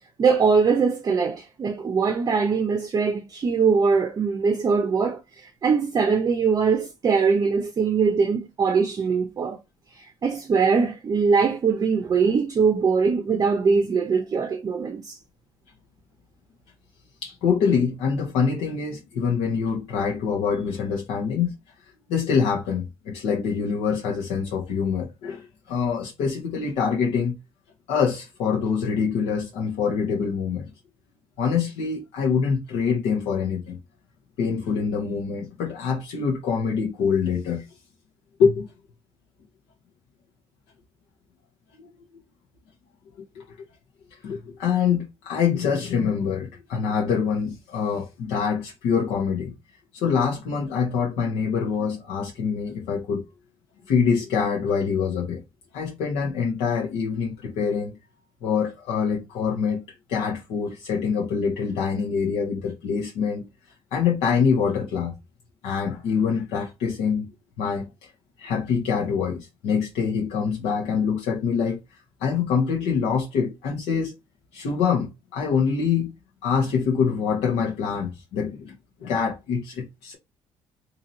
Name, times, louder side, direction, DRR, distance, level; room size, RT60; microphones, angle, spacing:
voice 1, 0.2-9.6 10.0-15.2, right 5 dB, 35° right, 0.6 m, -22 dB
voice 2, 17.2-21.5 22.1-27.4 27.9-30.6 31.4-33.8 34.4-37.6 38.4-38.7 43.3-43.4 44.2-49.5 49.9-53.2 53.9-55.4 55.7-57.9 58.4-59.8 60.1-63.4 63.9-65.1 65.6-67.3 67.6-67.9 68.4-71.8 72.2-74.1 74.5-76.1 76.4-78.7 79.0-80.2, left 6 dB, 80° left, 0.9 m, -25 dB
2.9 x 2.7 x 3.9 m
cardioid pair, 110°, 11 cm